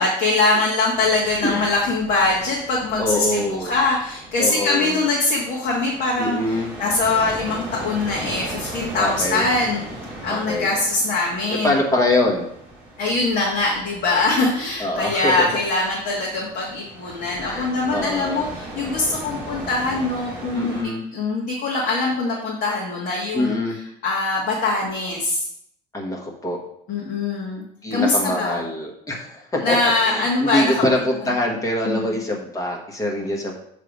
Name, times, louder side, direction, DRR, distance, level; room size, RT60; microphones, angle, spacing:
voice 1, 0.0-9.8 10.2-11.8 13.0-20.7 21.1-23.6 24.0-25.5 26.9-27.6 27.9-28.6 29.6-30.8 31.8-32.2, left 3 dB, 50° left, -4 dB, 1.6 m, -22 dB
sound 1, 0.9-20.8, right 1 dB, 10° right, 2.2 m, -38 dB
voice 2, 3.0-3.7 4.4-5.0 6.2-6.7 9.0-9.4 10.3-10.7 11.6-12.5 14.8-15.5 17.4-18.5 20.5-21.0 23.3-23.8 25.9-26.6 27.8-29.8 30.0-33.5, left 1 dB, 20° left, 0 dB, 1.4 m, -24 dB
7.4 x 3.4 x 5.3 m, 0.70 s
cardioid pair, 145°, 18 cm